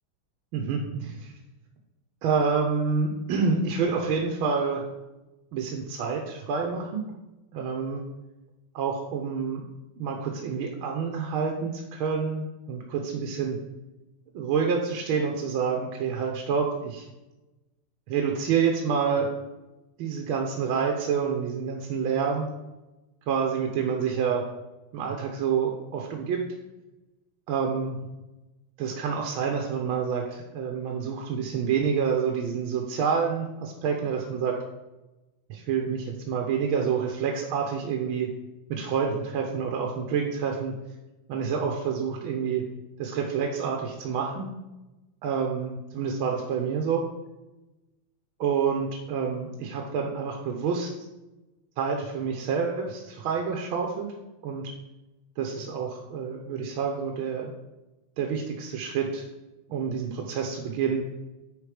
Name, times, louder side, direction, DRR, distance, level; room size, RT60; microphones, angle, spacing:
voice 1, 0.5-1.3 2.2-4.8 5.5-7.0 7.5-8.0 8.7-9.6 10.0-13.6 14.3-17.0 18.1-19.3 20.0-22.5 23.3-24.4 24.9-26.4 27.5-28.0 28.8-34.6 35.5-38.3 38.7-40.7 41.3-42.6 43.0-44.5 45.2-47.0 48.4-50.9 51.8-54.1 54.4-54.7 55.4-57.5 58.2-59.2 59.7-61.0, right 6 dB, 80° right, 1 dB, 1.7 m, -28 dB
10.0 x 4.1 x 5.0 m, 1.0 s
omnidirectional pair, 2.3 m